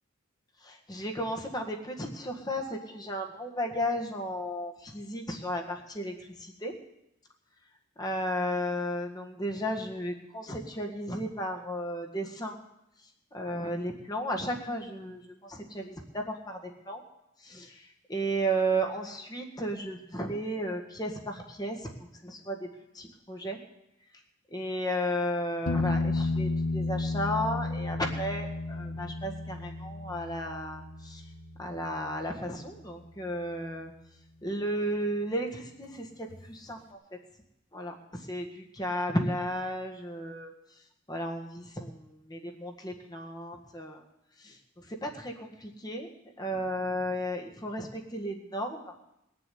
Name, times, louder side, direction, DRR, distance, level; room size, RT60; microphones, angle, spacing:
voice 1, 0.6-6.8 8.0-12.6 13.3-17.0 17.4-23.6 24.5-31.2 31.6-33.9 34.4-37.0 37.7-40.5 41.1-44.0 44.4-46.1 46.4-48.9, equal, 20° left, 2 dB, 1.7 m, -34 dB
sound 1, 25.7-33.3 36.3-36.4, left 2 dB, 75° left, 1.4 m, -33 dB
20.5 x 7.0 x 9.4 m, 0.85 s
head